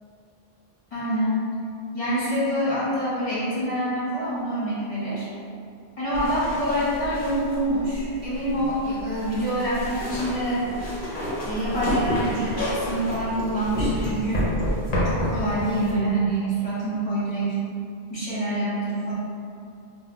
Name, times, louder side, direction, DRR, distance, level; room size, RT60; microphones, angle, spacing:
voice 1, 0.9-1.5 1.9-5.3 6.0-10.6 11.4-14.5 15.0-17.6 18.1-19.1, right 1 dB, 35° left, -11 dB, 1.2 m, -26 dB
sound 1, 6.1-15.9, equal, 55° left, 0.9 m, -30 dB
5.3 x 2.2 x 2.3 m, 2.4 s
omnidirectional pair, 1.0 m